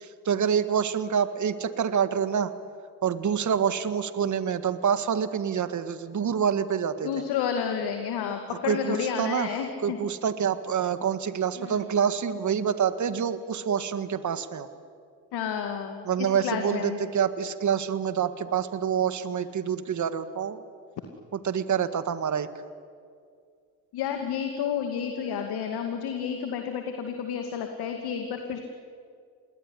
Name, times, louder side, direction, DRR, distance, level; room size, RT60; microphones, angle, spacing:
voice 1, 0.0-2.5 3.0-7.1 8.6-14.7 16.0-20.6 21.3-22.5, right 7 dB, 45° right, 12 dB, 1.9 m, -27 dB
voice 2, 7.0-10.0 11.6-11.8 15.3-17.0 23.9-28.6, left 7 dB, 70° left, 5 dB, 2.5 m, -31 dB
28.0 x 21.0 x 9.9 m, 2.2 s
hypercardioid pair, 60°, 40 cm